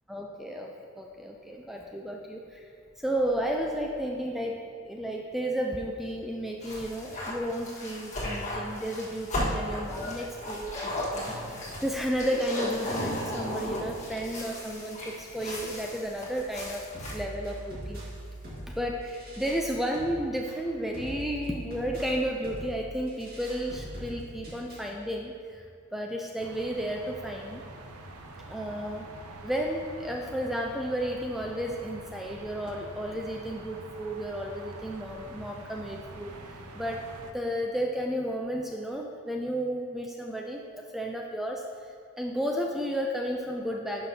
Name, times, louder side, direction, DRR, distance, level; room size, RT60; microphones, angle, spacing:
voice 1, 0.1-2.7 3.0-11.3 11.8-16.9 17.1-18.0 18.7-25.6 25.9-27.6 28.5-29.1 29.4-36.3 36.7-41.6 42.2-44.1, equal, ahead, 0 dB, 0.3 m, -32 dB
sound 1, 6.6-17.2, left 1 dB, 35° left, 1.4 m, -35 dB
sound 2, 16.9-24.9, right 1 dB, 45° right, 1.7 m, -42 dB
sound 3, 26.4-37.3, right 2 dB, 85° right, 0.6 m, -45 dB
11.0 x 5.8 x 2.7 m, 2.3 s
head